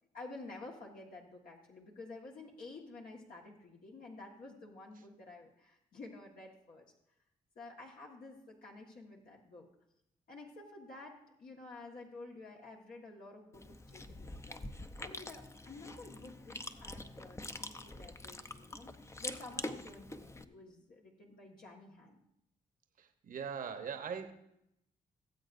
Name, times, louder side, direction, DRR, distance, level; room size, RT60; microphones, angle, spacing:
voice 1, 0.1-6.8 7.5-9.7 10.3-18.9 19.2-22.2, left 2 dB, 65° left, -1 dB, 1.6 m, -51 dB
Chewing mastication, 13.5-20.4, left 2 dB, 15° left, 0.7 m, -45 dB
voice 2, 23.0-24.3, right 6 dB, 60° right, 7 dB, 1.0 m, -41 dB
18.5 x 7.7 x 2.6 m, 0.80 s
supercardioid pair, 55°, 16 cm